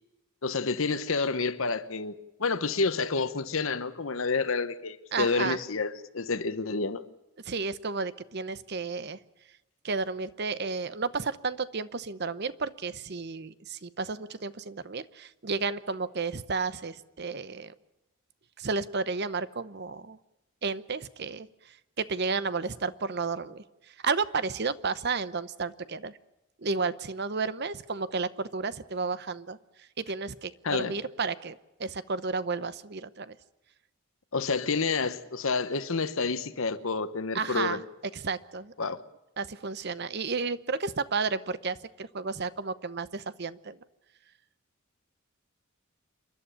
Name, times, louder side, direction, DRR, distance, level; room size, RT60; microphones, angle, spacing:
voice 1, 0.4-7.0 30.6-30.9 34.3-37.8 38.8-39.0, left 4 dB, 70° left, 1.0 m, -29 dB
voice 2, 5.1-5.6 7.4-9.2 9.8-17.7 18.6-20.2 20.6-26.2 26.6-29.6 30.0-33.4 37.3-37.8 38.1-38.7 39.4-43.8, right 4 dB, 50° right, 0.8 m, -32 dB
28.0 x 11.5 x 10.0 m
head